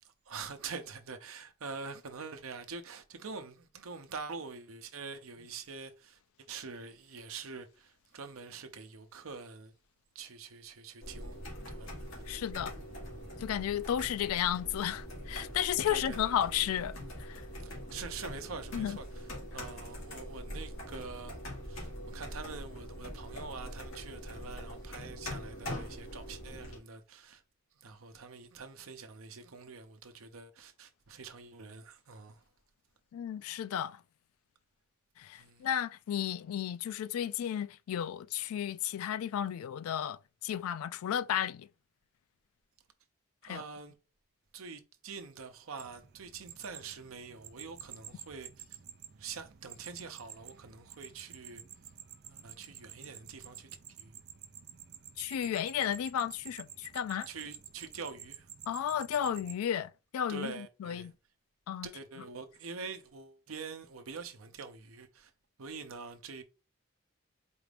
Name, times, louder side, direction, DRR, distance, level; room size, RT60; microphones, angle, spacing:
voice 1, 0.0-9.8 10.1-11.4 11.7-11.9 12.3-12.4 12.8-13.4 15.9-16.3 17.6-21.4 21.6-27.4 27.7-32.4 35.4-35.7 43.4-44.0 44.5-48.8 49.2-51.6 52.3-54.2 57.3-58.5 60.3-61.1 61.8-65.3 65.6-66.4, right 5 dB, 80° right, 0.7 m, -45 dB
sound 1, 11.0-26.8, equal, 65° left, 1.8 m, -43 dB
voice 2, 12.3-12.7 13.4-17.5 18.7-19.0 33.1-34.0 35.2-41.7 43.4-43.6 55.2-57.3 58.7-61.1 61.7-61.9, left 10 dB, 90° left, 0.3 m, -33 dB
sound 2, 45.8-59.6, right 9 dB, 50° right, 0.4 m, -50 dB
4.5 x 2.5 x 3.3 m
head